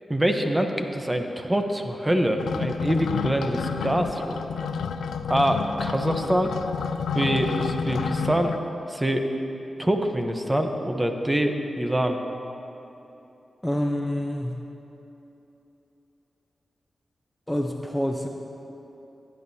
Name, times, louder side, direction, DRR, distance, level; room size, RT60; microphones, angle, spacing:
voice 1, 0.1-4.4 5.3-6.6 7.1-8.5 8.9-9.3 9.8-12.2, right 1 dB, 15° right, 5 dB, 0.9 m, -25 dB
sound 1, 2.4-8.6, left 6 dB, 90° left, 0.3 m, -29 dB
voice 2, 13.6-14.6 17.5-18.3, equal, 10° left, 2 dB, 0.7 m, -27 dB
15.5 x 8.9 x 2.8 m, 3.0 s
cardioid pair, 50°, 0 cm